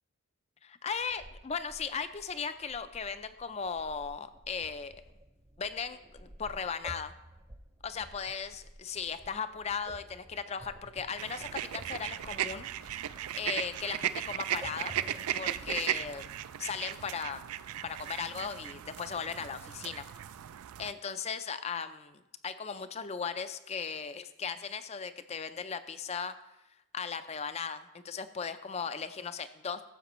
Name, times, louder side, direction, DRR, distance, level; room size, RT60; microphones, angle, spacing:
voice 1, 0.6-5.0 5.6-7.1 7.8-15.0 15.4-16.3 16.6-17.4 17.8-20.1 20.8-26.3 26.9-29.8, left 6 dB, 30° left, 11 dB, 0.4 m, -37 dB
sound 1, 1.0-16.4, right 1 dB, 20° right, 0.7 m, -53 dB
sound 2, 11.2-20.9, right 11 dB, 80° right, 0.3 m, -37 dB
15.0 x 7.5 x 3.0 m, 0.94 s
head